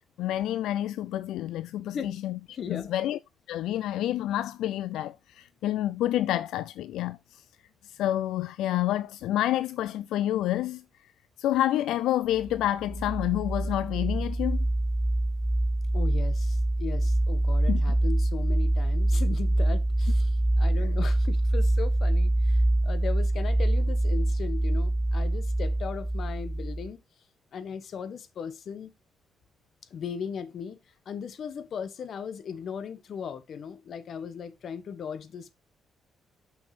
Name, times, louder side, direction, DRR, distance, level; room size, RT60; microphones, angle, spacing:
voice 1, 0.2-2.4 2.7-3.2 3.5-7.4 7.8-10.8 11.4-14.6 17.7-17.8 20.7-20.9, left 13 dB, 85° left, 0.3 m, -28 dB
voice 2, 2.5-2.9 15.9-27.0 27.5-28.9 29.9-30.8 31.0-35.5, left 7 dB, 60° left, 1.1 m, -37 dB
sound 1, 12.4-26.9, right 1 dB, 5° right, 0.4 m, -25 dB
6.3 x 6.1 x 4.2 m
cardioid pair, 90°, 0 cm